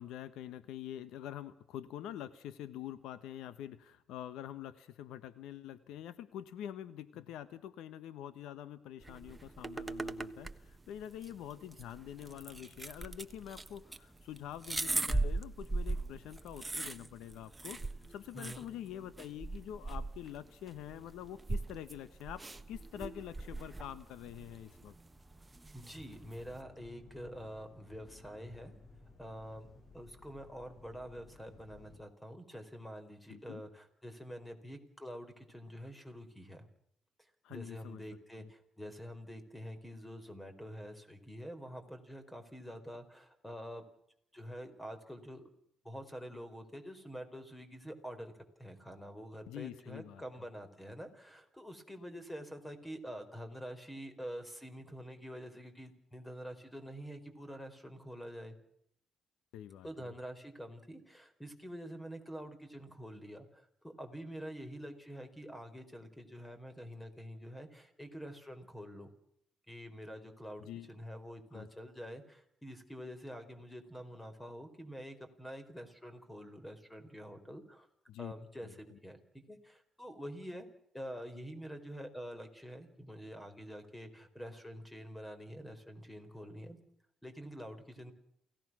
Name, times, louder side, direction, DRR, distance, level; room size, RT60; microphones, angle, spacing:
voice 1, 0.0-24.9 33.3-33.6 37.4-38.0 38.4-38.5 49.5-50.2 59.5-60.1 70.6-70.9 71.5-71.7 78.1-78.3 78.6-79.0, left 11 dB, 90° left, 14 dB, 1.2 m, -46 dB
sound 1, 9.0-26.6, right 2 dB, 15° right, 1.3 m, -40 dB
voice 2, 18.3-18.8 25.7-28.7 29.2-36.7 37.5-43.8 44.3-45.4 45.8-48.3 48.6-58.6 59.8-69.1 69.7-77.9 78.2-80.7 80.9-86.8 87.2-88.1, equal, 10° left, 9 dB, 4.5 m, -47 dB
sound 2, 26.0-32.0, left 2 dB, 35° left, 7.1 m, -57 dB
28.5 x 17.0 x 6.3 m, 0.74 s
cardioid pair, 90°, 0 cm